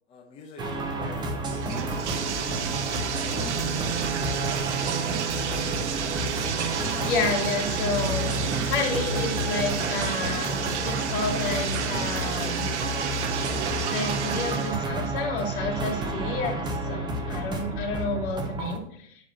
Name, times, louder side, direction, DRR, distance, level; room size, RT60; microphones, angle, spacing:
voice 1, 0.1-2.2 3.2-5.8, left 4 dB, 15° left, -1 dB, 1.0 m, -48 dB
sound 1, 0.6-18.8, right 2 dB, 10° right, 0.9 m, -30 dB
Bathtub (filling or washing), 0.7-14.8, right 7 dB, 65° right, 1.3 m, -31 dB
voice 2, 7.0-8.3 8.7-12.7 13.8-19.1, left 3 dB, 45° left, 1 dB, 3.1 m, -30 dB
sound 2, 7.6-13.7, equal, 35° right, 1.4 m, -36 dB
10.5 x 4.8 x 6.6 m, 0.65 s
hypercardioid pair, 145°, 37 cm